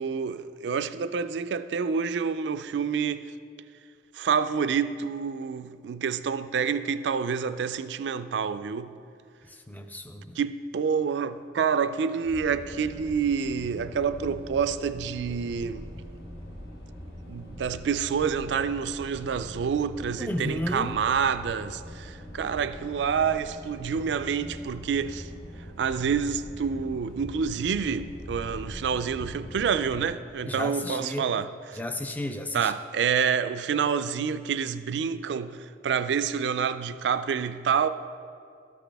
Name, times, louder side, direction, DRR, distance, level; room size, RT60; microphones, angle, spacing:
voice 1, 0.0-3.3 4.1-8.9 10.4-15.9 17.3-25.3 25.8-31.8 32.5-37.9, right 6 dB, 80° right, 0.3 m, -28 dB
voice 2, 9.5-10.4 20.2-21.0 30.5-31.3 31.7-32.7, left 1 dB, 10° left, 0.3 m, -33 dB
sound 1, 12.2-30.1, equal, 65° left, 1.3 m, -42 dB
13.5 x 5.9 x 3.4 m
head